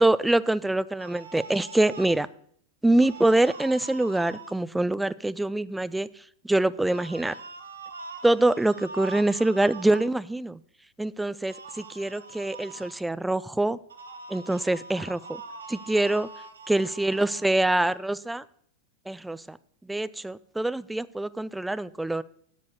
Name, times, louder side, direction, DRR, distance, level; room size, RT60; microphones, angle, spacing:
voice 1, 0.0-2.3 2.8-6.1 6.4-7.3 8.2-10.6 11.0-13.8 14.3-15.4 15.7-16.3 16.7-18.4 19.1-19.6 19.9-22.2, right 2 dB, 5° right, 17 dB, 0.3 m, -25 dB
sound 1, 1.0-2.2 2.9-4.5 6.8-10.1 11.5-12.9 13.9-18.0, right 4 dB, 70° right, 1.0 m, -43 dB
9.2 x 5.3 x 6.4 m, 0.64 s
figure-of-eight pair, 90°, 0 cm